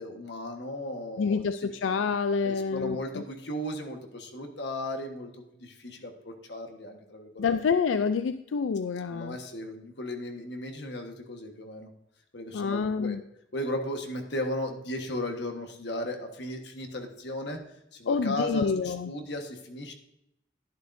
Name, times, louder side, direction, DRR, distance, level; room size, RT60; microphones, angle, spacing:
voice 1, 0.0-1.7 2.4-7.5 9.1-11.9 12.3-13.2 13.5-17.6 17.9-19.9, left 1 dB, 60° left, 4 dB, 1.4 m, -36 dB
voice 2, 1.2-3.2 7.4-9.4 12.5-13.2 18.1-19.1, left 5 dB, 90° left, 11 dB, 0.4 m, -27 dB
11.5 x 10.5 x 2.6 m, 0.83 s
head